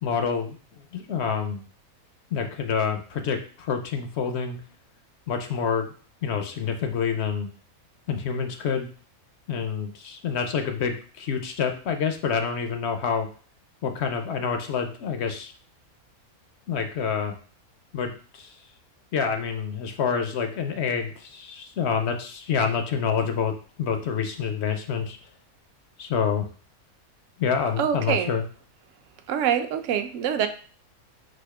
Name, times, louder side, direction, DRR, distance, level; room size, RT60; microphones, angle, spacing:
voice 1, 0.0-1.6 2.3-4.6 5.3-5.9 6.2-7.5 8.1-8.9 9.5-13.3 13.8-15.5 16.7-17.3 17.9-18.5 19.1-25.2 26.0-26.5 27.4-28.4, left 6 dB, 65° left, 6 dB, 0.7 m, -27 dB
voice 2, 27.8-28.3 29.3-30.5, right 8 dB, 65° right, 7 dB, 0.9 m, -25 dB
4.2 x 2.5 x 4.7 m, 0.41 s
omnidirectional pair, 1.5 m